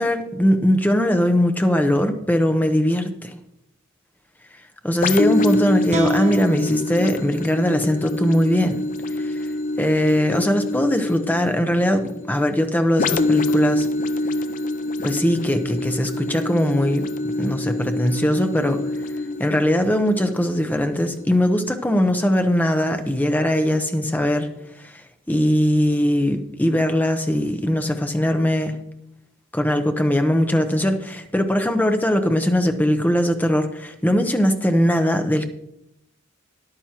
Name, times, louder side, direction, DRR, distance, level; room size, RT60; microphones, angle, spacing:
voice 1, 0.0-3.3 4.8-8.8 9.1-9.4 9.8-13.9 15.0-17.1 17.4-18.8 19.4-24.5 24.8-25.0 25.3-28.8 29.5-35.4, equal, 10° left, 6 dB, 0.7 m, -20 dB
sound 1, 5.0-22.5 23.1-23.2, left 2 dB, 40° left, 0.4 m, -26 dB
sound 2, 5.9-9.1, right 3 dB, 35° right, 0.8 m, -34 dB
13.5 x 10.5 x 2.9 m, 0.83 s
head